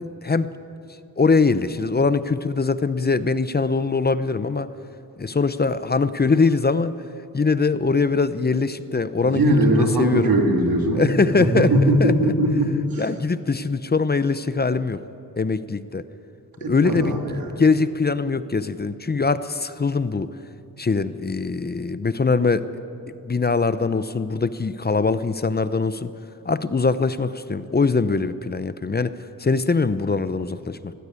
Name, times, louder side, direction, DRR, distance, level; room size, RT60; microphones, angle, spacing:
voice 1, 1.2-4.7 5.2-6.9 7.3-10.3 10.9-12.3 13.0-15.0 15.4-16.0 16.7-17.2 17.6-20.3 20.8-22.6 23.2-26.1 26.4-29.1 29.4-30.9, left 4 dB, 30° left, 13 dB, 0.7 m, -22 dB
voice 2, 9.2-13.1 16.6-17.5, right 1 dB, 90° right, 2 dB, 2.9 m, -20 dB
20.0 x 15.0 x 9.6 m, 2.8 s
wide cardioid pair, 105°, 34 cm